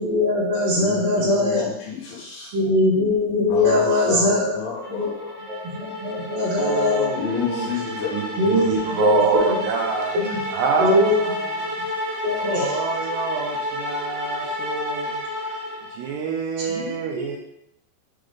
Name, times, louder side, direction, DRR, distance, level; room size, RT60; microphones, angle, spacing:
voice 1, 0.0-1.7 2.5-4.5 4.9-5.1 5.5-7.1 8.4-9.6 10.1-10.4 10.8-11.2 12.2-12.7 16.7-17.2, left 2 dB, 50° right, -10 dB, 1.9 m, -21 dB
voice 2, 0.7-2.5 3.5-5.3 7.1-8.7, left 7 dB, 85° left, -6 dB, 3.5 m, -31 dB
sound 1, 4.8-16.2, left 1 dB, 35° right, 0.5 m, -31 dB
voice 3, 6.6-7.7 8.1-10.1 10.5-11.7 12.4-15.2 15.9-17.4, right 6 dB, 80° right, 0 dB, 2.6 m, -26 dB
7.8 x 3.7 x 3.4 m, 0.77 s
omnidirectional pair, 5.4 m